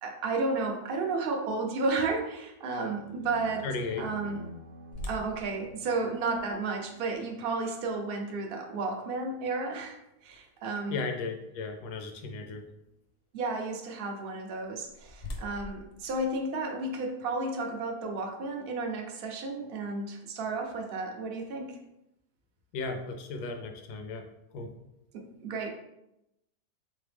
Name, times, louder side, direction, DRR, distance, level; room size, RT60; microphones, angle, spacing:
voice 1, 0.0-4.4 5.1-11.1 13.3-21.8 25.1-25.7, right 3 dB, 60° right, 2 dB, 0.6 m, -32 dB
sound 1, 2.8-7.1, equal, 80° right, 1.1 m, -48 dB
voice 2, 3.6-4.0 10.9-12.6 22.7-24.3 24.5-24.7, left 4 dB, 80° left, 4 dB, 1.2 m, -35 dB
sound 2, 4.9-10.9 11.4-11.5 12.1-12.3 14.4-17.1, left 1 dB, 60° left, 0.8 m, -46 dB
3.7 x 3.5 x 3.4 m, 0.87 s
omnidirectional pair, 1.7 m